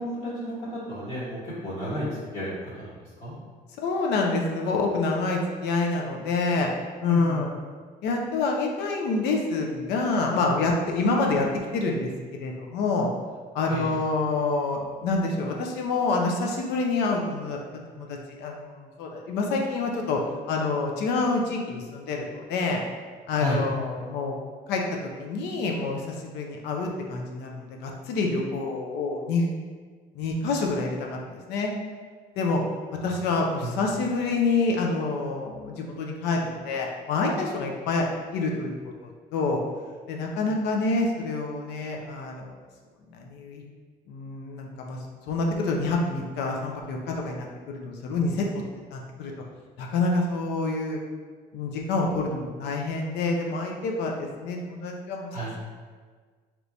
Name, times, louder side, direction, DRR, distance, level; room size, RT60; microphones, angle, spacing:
voice 1, 0.0-2.1 2.3-2.9 3.2-3.3 7.1-7.4 13.7-13.9 23.4-23.6 33.0-33.1 33.6-33.7 55.3-55.5, equal, 45° left, -10 dB, 1.1 m, -32 dB
voice 2, 3.8-6.7 7.0-7.5 8.0-11.5 11.7-12.1 12.4-13.1 13.5-17.6 18.0-20.2 20.5-22.8 23.3-24.3 24.7-24.8 25.2-29.5 30.1-31.7 32.4-32.6 33.0-38.1 38.3-38.7 39.0-39.6 40.1-42.5 43.1-43.6 44.1-45.0 45.3-48.6 48.9-49.3 49.8-51.0 51.5-55.3, left 3 dB, 80° left, 1 dB, 0.5 m, -27 dB
3.3 x 2.9 x 2.6 m, 1.5 s
cardioid pair, 110°, 17 cm